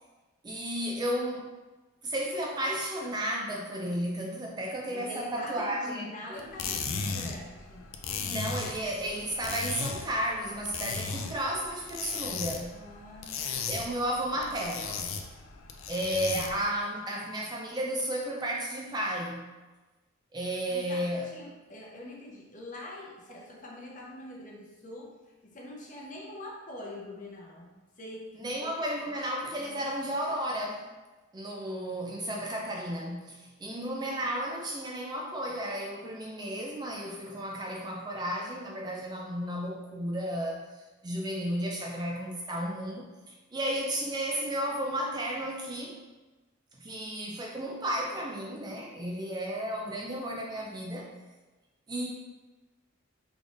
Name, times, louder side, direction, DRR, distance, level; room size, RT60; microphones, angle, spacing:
voice 1, 0.4-1.5 2.0-6.4 8.2-12.8 13.7-15.2 15.9-19.5 20.3-21.3 23.3-23.4 28.4-30.9 31.3-40.6 41.0-46.0 46.8-51.1 51.9-52.1, right 1 dB, 20° right, -1 dB, 0.3 m, -33 dB
voice 2, 4.9-8.0 12.7-13.9 14.6-14.7 20.7-28.6 29.6-30.0, left 1 dB, 40° left, -2 dB, 0.7 m, -45 dB
sound 1, 6.4-16.7, left 5 dB, 70° left, 0.4 m, -36 dB
3.7 x 3.4 x 2.4 m, 1.2 s
head